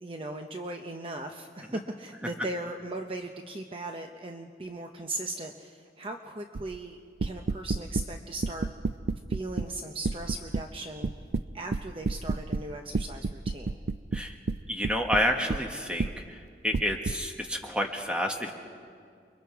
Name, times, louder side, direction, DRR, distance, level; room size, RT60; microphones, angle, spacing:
voice 1, 0.0-8.7 9.3-11.1 11.5-13.8, right 2 dB, 30° right, 4 dB, 0.8 m, -38 dB
sound 1, 6.5-6.8 7.2-8.1 8.4-9.7 10.0-10.7 11.0-12.7 12.9-15.6 16.0-16.2 16.7-17.2, right 3 dB, 60° right, 0.4 m, -30 dB
voice 2, 14.7-16.4 16.6-18.5, equal, 5° right, 2 dB, 1.6 m, -29 dB
29.5 x 23.0 x 4.7 m, 2.3 s
head